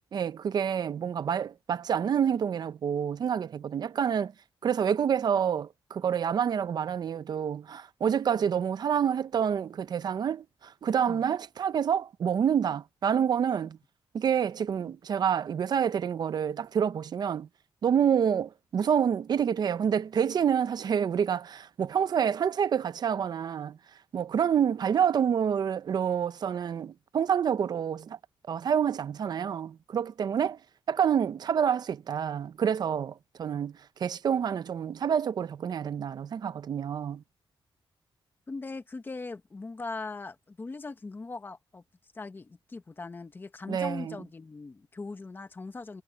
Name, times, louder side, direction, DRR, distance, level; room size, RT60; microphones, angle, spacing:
voice 1, 0.0-4.3 4.6-13.8 14.1-17.5 17.8-23.8 24.1-28.2 28.5-30.6 30.9-37.2 43.7-44.2, right 8 dB, 50° right, 0.6 m, -28 dB
voice 2, 38.5-41.8 42.1-46.0, left 3 dB, 25° left, 1.3 m, -40 dB
wide cardioid pair, 170°, 9 cm